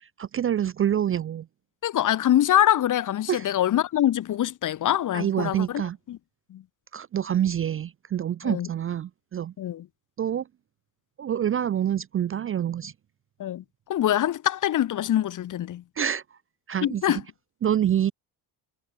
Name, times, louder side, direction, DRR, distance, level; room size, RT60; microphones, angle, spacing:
voice 1, 0.2-1.5 3.3-3.5 5.1-6.0 6.9-9.5 10.2-10.5 11.2-12.9 16.0-16.4 16.7-17.2 17.6-18.1, right 10 dB, 30° right, 0.4 m, -26 dB
voice 2, 1.8-5.8 6.1-6.2 6.5-6.6 8.4-8.7 9.6-9.9 13.4-13.6 13.9-15.8 16.8-17.2, left 12 dB, 45° left, 0.8 m, -24 dB
cardioid pair, 140°, 43 cm